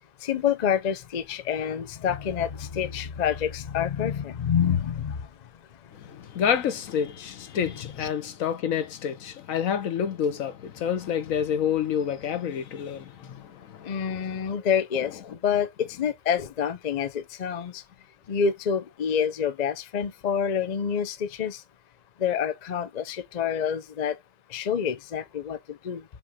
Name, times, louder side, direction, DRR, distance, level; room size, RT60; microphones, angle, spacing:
voice 1, 0.2-5.2 8.0-8.1 13.8-17.8 18.3-21.6 22.2-24.2 24.5-25.6 25.8-26.0, left 7 dB, 75° left, 0.4 m, -27 dB
voice 2, 5.9-14.2, left 8 dB, 60° left, 1.2 m, -28 dB
6.8 x 3.4 x 4.9 m
omnidirectional pair, 1.8 m